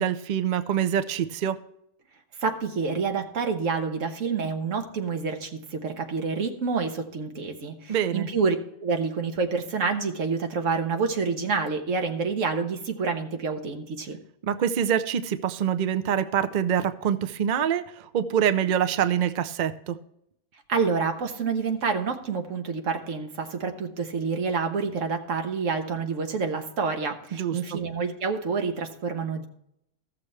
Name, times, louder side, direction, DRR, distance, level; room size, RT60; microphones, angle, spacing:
voice 1, 0.0-1.6 7.9-8.3 14.4-20.0 27.3-27.6, right 9 dB, 85° right, 10 dB, 0.4 m, -25 dB
voice 2, 2.4-14.2 20.7-29.5, right 5 dB, 60° right, 5 dB, 1.4 m, -28 dB
15.0 x 6.7 x 3.2 m, 0.75 s
omnidirectional pair, 1.6 m